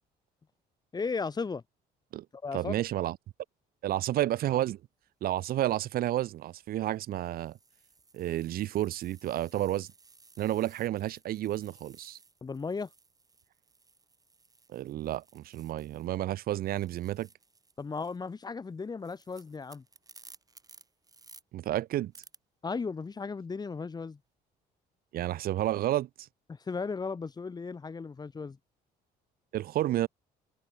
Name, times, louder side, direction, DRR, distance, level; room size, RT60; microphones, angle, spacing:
voice 1, 0.9-1.6 2.3-2.8 12.4-12.9 17.8-19.8 22.6-24.2 26.5-28.6, left 4 dB, 25° left, 1.4 m, -35 dB
voice 2, 2.5-3.2 3.8-4.8 5.2-7.5 8.1-9.9 10.4-12.2 14.7-17.3 21.5-22.1 25.1-26.1 29.5-30.1, right 13 dB, 60° right, 0.7 m, -31 dB
sound 1, 5.1-5.3 6.1-16.2 16.5-21.4 22.1-22.4, right 4 dB, 20° right, 7.7 m, -59 dB
cardioid pair, 110°, 17 cm